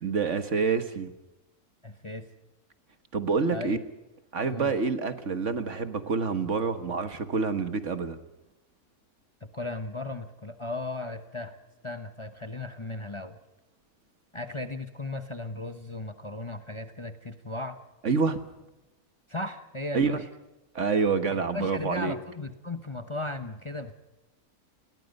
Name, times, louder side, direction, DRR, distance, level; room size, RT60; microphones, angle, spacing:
voice 1, 0.0-1.1 3.1-3.8 4.3-8.2 18.0-18.4 19.9-20.1 20.7-22.1, right 5 dB, 55° right, 10 dB, 1.7 m, -27 dB
voice 2, 1.8-2.3 3.5-3.8 4.5-4.7 9.4-11.6 11.8-13.4 14.3-17.8 19.3-20.3 21.3-23.9, left 2 dB, 20° left, 8 dB, 1.0 m, -36 dB
29.5 x 21.0 x 5.4 m, 0.98 s
omnidirectional pair, 1.6 m